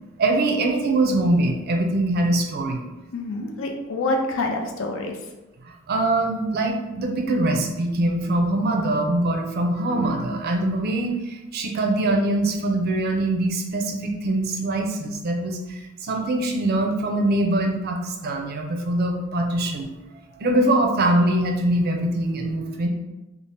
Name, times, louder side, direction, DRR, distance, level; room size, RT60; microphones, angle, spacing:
voice 1, 0.2-2.8 5.9-19.9 20.4-22.9, right 1 dB, 50° right, 3 dB, 0.4 m, -23 dB
voice 2, 3.1-5.2, left 2 dB, 70° left, 3 dB, 0.4 m, -26 dB
2.7 x 2.0 x 3.2 m, 1.0 s
head